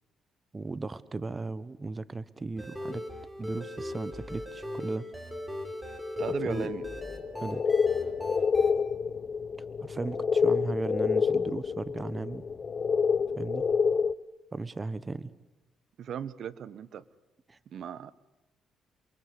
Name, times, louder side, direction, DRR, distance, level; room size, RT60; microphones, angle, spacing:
voice 1, 0.5-3.0 3.4-5.0 6.4-6.7 7.4-7.6 9.8-12.5 13.4-13.7 14.5-15.3 17.5-17.6, right 3 dB, 25° right, 15 dB, 1.1 m, -36 dB
sound 1, 2.6-8.7, left 1 dB, 5° right, 5.0 m, -39 dB
sound 2, 6.2-14.1, left 6 dB, 45° left, 0.9 m, -28 dB
voice 2, 6.2-6.9 16.0-17.0 17.7-18.1, right 8 dB, 65° right, 16 dB, 1.2 m, -37 dB
28.5 x 23.0 x 8.4 m, 1.0 s
cardioid pair, 90°, 0 cm